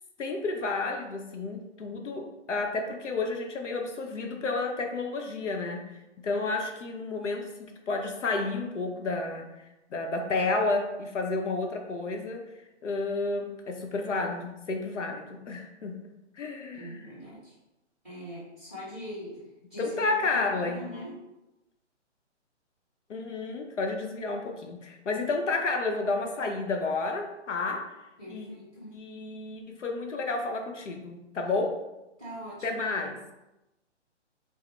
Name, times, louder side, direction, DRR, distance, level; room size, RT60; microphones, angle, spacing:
voice 1, 0.2-5.8 6.2-9.4 9.9-12.5 12.8-16.0 16.4-17.1 19.8-20.8 23.1-27.9 28.3-28.5 28.9-31.8 32.6-33.2, left 3 dB, 80° left, 3 dB, 0.7 m, -31 dB
voice 2, 16.7-17.5 18.0-19.3 19.7-21.1 28.2-28.9 32.2-33.1, equal, ahead, -10 dB, 1.1 m, -41 dB
4.9 x 2.1 x 3.0 m, 0.97 s
hypercardioid pair, 175°, 36 cm